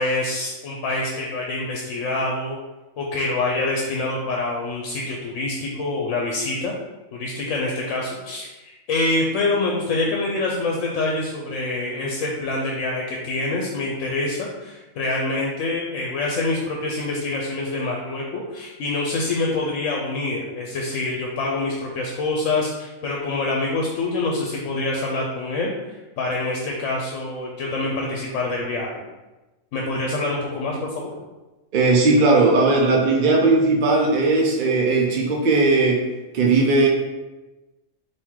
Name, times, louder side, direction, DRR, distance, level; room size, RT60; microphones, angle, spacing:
voice 1, 0.0-2.6 3.0-6.7 7.1-29.0 29.7-31.1, left 2 dB, 75° left, -2 dB, 0.9 m, -26 dB
voice 2, 31.7-36.0 36.3-36.9, right 3 dB, 55° right, -1 dB, 0.5 m, -18 dB
3.7 x 2.7 x 4.5 m, 1.1 s
omnidirectional pair, 1.4 m